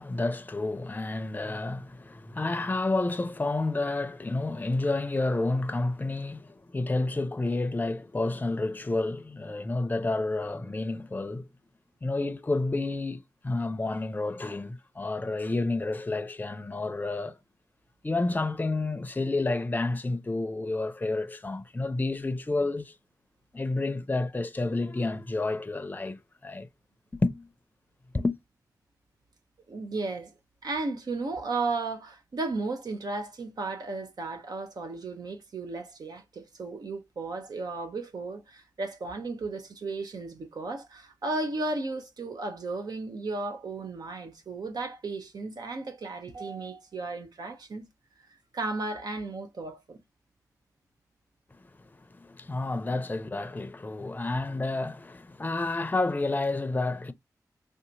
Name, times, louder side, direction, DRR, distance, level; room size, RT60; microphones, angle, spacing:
voice 1, 0.0-11.4 12.0-17.4 18.0-22.9 23.5-26.7 27.2-27.5 28.1-28.4 51.6-57.1, left 2 dB, 25° left, 0.5 m, -30 dB
voice 2, 29.7-30.3 30.6-47.9 48.5-50.0, right 3 dB, 75° right, 0.8 m, -34 dB
3.5 x 2.8 x 2.5 m
cardioid pair, 65°, 7 cm